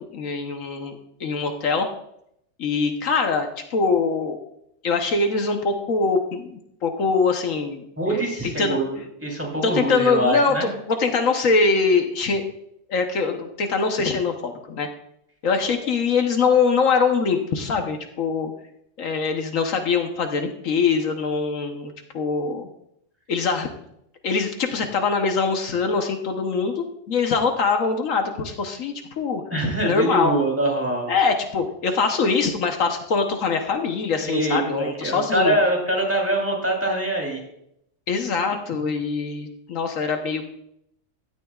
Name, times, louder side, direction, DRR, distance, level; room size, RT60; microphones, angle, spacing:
voice 1, 0.1-1.9 2.6-4.4 4.8-8.8 9.6-12.4 12.9-14.9 15.4-18.5 19.0-22.7 23.3-23.7 24.2-29.4 29.8-30.3 31.1-35.6 38.1-40.5, left 4 dB, 75° left, 4 dB, 1.4 m, -23 dB
voice 2, 8.0-10.7 29.5-31.1 34.2-37.4, right 1 dB, 10° right, -1 dB, 3.3 m, -24 dB
16.0 x 12.5 x 2.4 m, 0.78 s
omnidirectional pair, 1.4 m